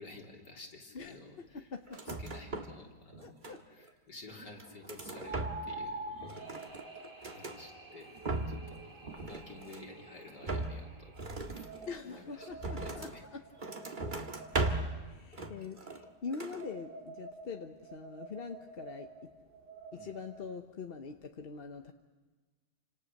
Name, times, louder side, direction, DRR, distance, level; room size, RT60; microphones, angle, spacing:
voice 1, 0.0-1.7 2.1-3.4 3.7-6.3 6.6-6.9 7.3-8.2 8.5-11.1 11.5-11.7 12.1-13.2 13.9-14.0 19.9-20.2, left 3 dB, 80° left, 0 dB, 4.1 m, -52 dB
voice 2, 1.5-2.2 3.2-3.6 11.9-13.4 15.0-21.9, left 5 dB, 40° left, 5 dB, 1.0 m, -44 dB
sound 1, 1.9-2.8 3.1-3.9 4.4-5.9 6.1-7.6 8.0-8.7 9.0-10.0 10.4-13.2 13.6-15.0 15.3-16.1 16.3-16.6, right 2 dB, 30° right, 1.6 m, -38 dB
sound 2, 2.6-2.7 5.2-10.4 11.1-14.8 15.9-20.4, right 2 dB, 85° right, 2.2 m, -48 dB
sound 3, 6.1-13.0, right 2 dB, 50° right, 3.5 m, -56 dB
29.0 x 26.5 x 6.6 m, 1.3 s
omnidirectional pair, 1.8 m